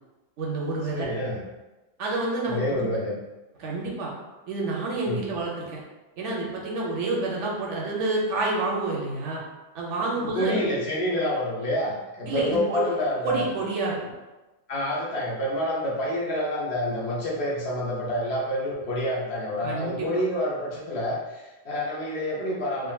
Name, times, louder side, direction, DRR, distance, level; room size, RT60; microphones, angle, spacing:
voice 1, 0.4-1.1 2.0-2.8 3.6-4.1 4.5-5.8 6.2-9.4 9.7-10.7 12.3-12.8 13.2-14.1 19.6-20.1, right 3 dB, 70° right, -3 dB, 0.9 m, -28 dB
voice 2, 0.9-1.4 2.5-3.2 5.1-5.2 10.2-13.5 14.7-22.9, left 1 dB, 60° left, -5 dB, 0.8 m, -28 dB
3.7 x 2.1 x 2.2 m, 1.1 s
omnidirectional pair, 1.4 m